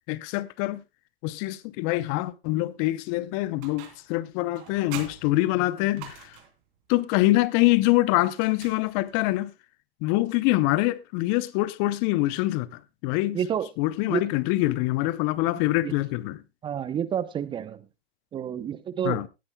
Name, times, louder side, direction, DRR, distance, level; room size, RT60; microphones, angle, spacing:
voice 1, 0.1-0.8 1.2-6.4 6.9-9.5 10.0-13.4 13.8-16.4 19.0-19.3, left 18 dB, 35° left, 0.6 m, -25 dB
sound 1, 3.6-4.2 4.5-6.6 8.3-9.3, right 10 dB, 45° right, 3.0 m, -44 dB
voice 2, 13.3-13.7 14.1-14.3 15.8-15.9 16.6-17.9 18.3-19.3, right 8 dB, 15° right, 0.6 m, -29 dB
18.0 x 9.8 x 2.2 m
hypercardioid pair, 110°, 29 cm